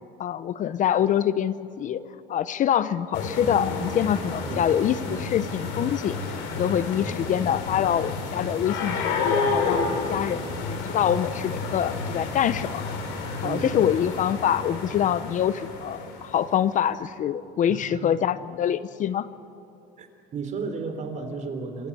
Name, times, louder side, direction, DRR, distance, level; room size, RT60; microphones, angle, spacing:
voice 1, 0.2-2.0 2.3-12.8 13.4-19.3, left 9 dB, 40° left, 15 dB, 0.7 m, -25 dB
sound 1, 3.1-16.6, left 4 dB, 75° left, 4.5 m, -30 dB
voice 2, 9.6-10.0 13.4-13.8 17.7-18.2 20.0-20.1 20.3-21.9, right 4 dB, 40° right, 7 dB, 3.5 m, -34 dB
27.0 x 15.0 x 8.5 m, 2.9 s
cardioid pair, 120°, 19 cm